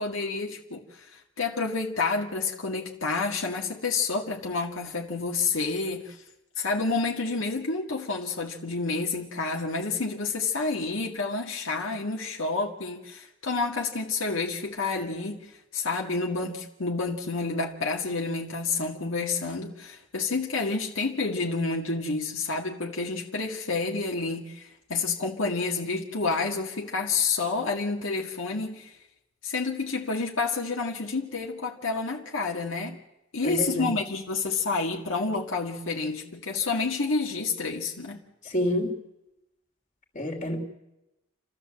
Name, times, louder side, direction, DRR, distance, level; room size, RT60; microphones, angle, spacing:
voice 1, 0.0-6.2 6.6-28.9 29.4-33.0 33.3-38.2, left 4 dB, 75° left, 2.0 m, -29 dB
voice 2, 33.4-33.9 38.4-39.0 40.1-40.6, left 1 dB, 40° left, 3.0 m, -28 dB
29.5 x 13.5 x 7.7 m
head